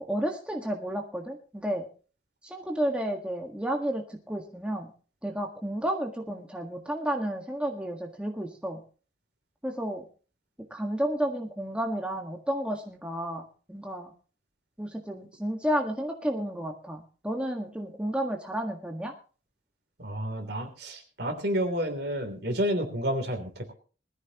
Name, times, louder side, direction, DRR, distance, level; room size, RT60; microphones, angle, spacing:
voice 1, 0.1-1.9 2.4-4.9 5.2-8.8 9.6-10.1 10.7-14.1 14.8-19.1, right 1 dB, 5° right, 1 dB, 1.6 m, -31 dB
voice 2, 20.0-23.7, equal, 60° right, 5 dB, 3.3 m, -30 dB
20.0 x 14.5 x 3.0 m, 0.38 s
head